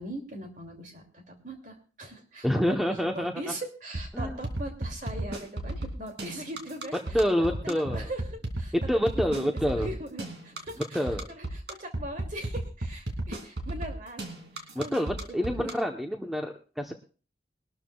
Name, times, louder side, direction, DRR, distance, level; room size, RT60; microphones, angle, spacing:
voice 1, 0.0-7.2 7.5-8.7 9.1-15.7, right 1 dB, 45° right, 3 dB, 2.6 m, -40 dB
voice 2, 2.4-3.3 4.1-4.4 7.1-8.0 8.9-9.9 10.9-11.3 14.7-16.9, equal, ahead, 3 dB, 0.9 m, -27 dB
sound 1, 3.9-15.7, right 1 dB, 80° right, 2.6 m, -34 dB
22.0 x 12.5 x 2.3 m, 0.36 s
head